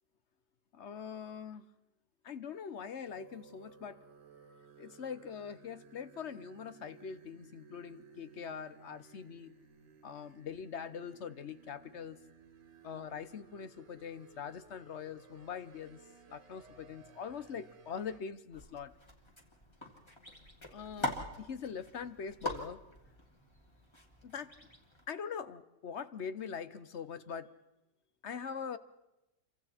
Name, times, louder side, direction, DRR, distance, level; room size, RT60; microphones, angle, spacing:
voice 1, 0.7-1.6 2.2-4.0 4.8-9.5 10.0-12.2 12.8-16.0 16.3-18.9 20.7-22.8 24.2-24.5 25.1-27.5 28.2-28.8, left 7 dB, 50° left, 13 dB, 1.0 m, -43 dB
sound 1, 3.1-18.2, right 5 dB, 80° right, 2.5 m, -59 dB
sound 2, 18.5-25.1, left 1 dB, 15° left, 2.4 m, -43 dB
29.0 x 24.0 x 4.3 m, 0.94 s
omnidirectional pair, 1.8 m